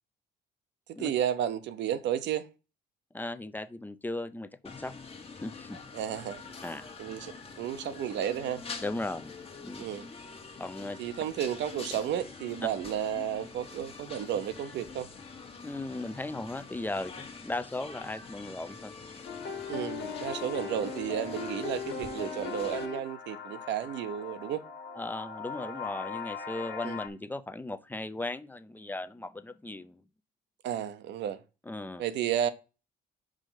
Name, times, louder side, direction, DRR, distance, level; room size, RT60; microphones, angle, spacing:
voice 1, 0.9-2.5 5.9-6.4 7.0-8.6 9.8-10.1 11.0-15.1 19.7-24.6 26.8-27.0 30.6-31.4 32.0-32.5, right 10 dB, 75° right, 0.8 m, -32 dB
voice 2, 3.1-4.9 5.4-5.8 6.6-6.9 8.8-9.3 9.6-9.8 10.6-11.0 15.6-18.9 25.0-30.0 31.7-32.0, left 2 dB, 10° left, 0.6 m, -37 dB
sound 1, 4.6-22.9, left 4 dB, 30° left, 1.3 m, -46 dB
sound 2, 19.3-27.1, left 6 dB, 70° left, 1.6 m, -39 dB
5.2 x 4.9 x 5.7 m
cardioid pair, 95°, 18 cm